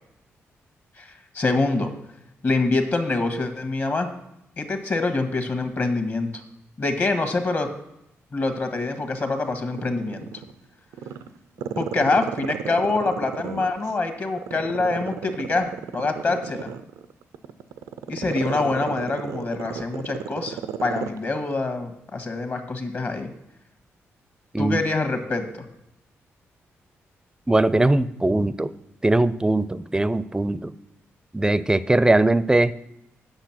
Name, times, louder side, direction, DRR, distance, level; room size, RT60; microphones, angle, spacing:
voice 1, 1.0-1.9 2.4-4.1 4.6-6.4 6.8-7.7 8.3-10.3 11.8-16.7 18.1-23.3 24.6-25.6, left 3 dB, 45° left, 8 dB, 1.5 m, -25 dB
Growling, 8.8-10.5 10.9-13.9 14.4-21.2 21.5-21.6, right 8 dB, 85° right, 0.5 m, -33 dB
voice 2, 27.5-28.7 29.0-30.7 31.3-32.7, right 2 dB, 15° right, 17 dB, 0.4 m, -20 dB
8.1 x 6.4 x 6.0 m, 0.82 s
cardioid pair, 65°, 5 cm